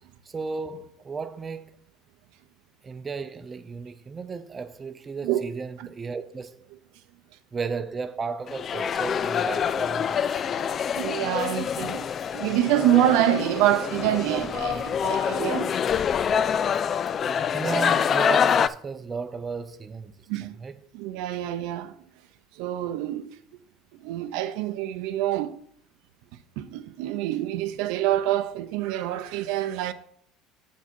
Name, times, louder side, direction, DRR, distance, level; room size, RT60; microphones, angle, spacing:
voice 1, 0.3-1.7 2.8-6.5 7.5-10.7 16.7-16.8 17.5-20.1 20.6-20.8, right 4 dB, 25° right, 0.7 m, -34 dB
sound 1, 8.5-18.7, left 7 dB, 40° left, 0.3 m, -26 dB
voice 2, 10.9-15.8 20.3-20.5 20.9-21.9 22.6-23.4 24.0-25.6 26.6-29.9, right 13 dB, 75° right, 0.7 m, -26 dB
7.2 x 7.0 x 4.6 m
supercardioid pair, 110°, 0 cm